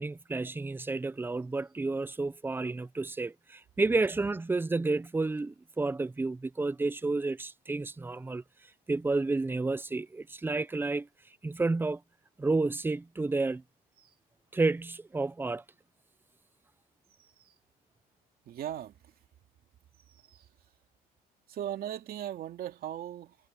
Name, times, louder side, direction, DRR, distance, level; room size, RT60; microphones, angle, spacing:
voice 1, 0.0-8.4 8.9-11.1 11.4-12.0 12.4-13.6 14.5-15.6, right 3 dB, 10° right, 0.6 m, -30 dB
voice 2, 17.2-17.5 18.5-19.1 20.1-20.5 21.5-23.4, right 11 dB, 60° right, 2.5 m, -39 dB
cardioid pair, 110°, 17 cm